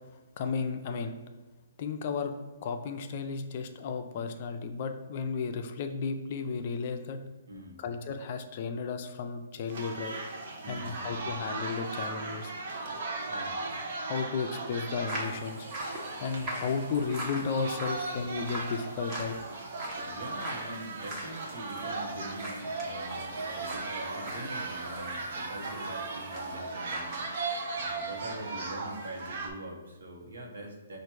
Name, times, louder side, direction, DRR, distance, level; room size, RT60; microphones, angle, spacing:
voice 1, 0.4-1.2 1.8-2.3 2.6-7.2 7.8-10.2 10.7-12.5 14.0-15.7 16.2-19.3, left 5 dB, 40° left, 6 dB, 0.4 m, -34 dB
voice 2, 7.5-7.8 10.6-11.2 13.3-13.6 20.0-27.2 27.7-31.0, right 1 dB, 90° right, 0 dB, 1.1 m, -43 dB
sound 1, 9.7-29.5, right 3 dB, 55° right, 0.7 m, -37 dB
sound 2, 15.1-27.3 27.5-27.9, right 1 dB, 25° right, 1.0 m, -42 dB
4.5 x 2.5 x 4.6 m, 1.2 s
hypercardioid pair, 160°, 0 cm